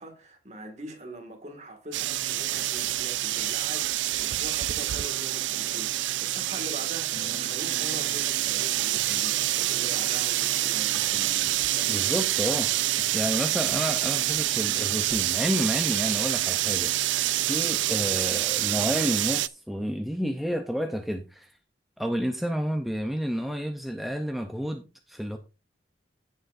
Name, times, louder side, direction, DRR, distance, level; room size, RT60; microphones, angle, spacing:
voice 1, 0.0-11.3 11.7-12.1, right 1 dB, 40° right, 2.0 m, -43 dB
sound 1, 1.9-19.5, right 15 dB, 80° right, 0.4 m, -27 dB
Human voice / Acoustic guitar, 7.1-15.1, left 2 dB, 40° left, 0.9 m, -47 dB
voice 2, 11.9-12.7 13.1-16.9 17.4-21.6 22.0-25.4, equal, ahead, 0.6 m, -30 dB
16.0 x 6.5 x 2.6 m
head